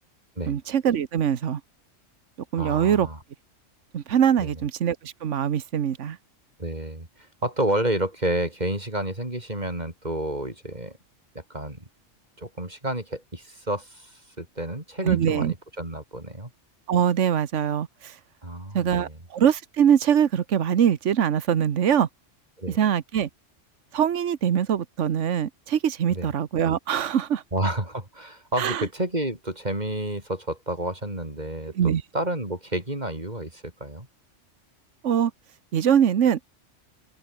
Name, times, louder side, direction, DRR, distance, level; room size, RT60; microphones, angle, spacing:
voice 1, 0.5-1.6 2.5-3.1 3.9-6.2 15.0-15.5 16.9-18.1 18.7-22.1 22.8-23.3 23.9-27.4 28.6-28.9 31.8-32.0 35.0-35.3 35.7-36.4, right 8 dB, 75° right, 1.4 m, -23 dB
voice 2, 2.5-3.2 4.4-4.6 6.6-11.0 11.3-11.9 12.4-16.5 18.4-19.2 22.6-22.8 26.1-26.3 27.5-34.1, right 1 dB, 35° right, 4.8 m, -30 dB
open air
omnidirectional pair, 1.3 m